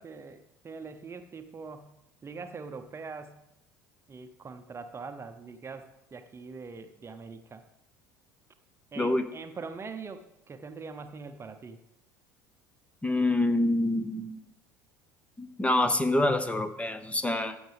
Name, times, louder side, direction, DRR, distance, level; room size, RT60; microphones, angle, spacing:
voice 1, 0.0-1.9 2.2-3.4 4.1-7.6 8.9-11.8, right 4 dB, 25° right, 8 dB, 0.8 m, -43 dB
voice 2, 9.0-9.3 13.0-14.4 15.4-17.6, left 1 dB, 15° left, 11 dB, 0.9 m, -26 dB
14.5 x 8.0 x 3.5 m, 0.88 s
hypercardioid pair, 65°, 10 cm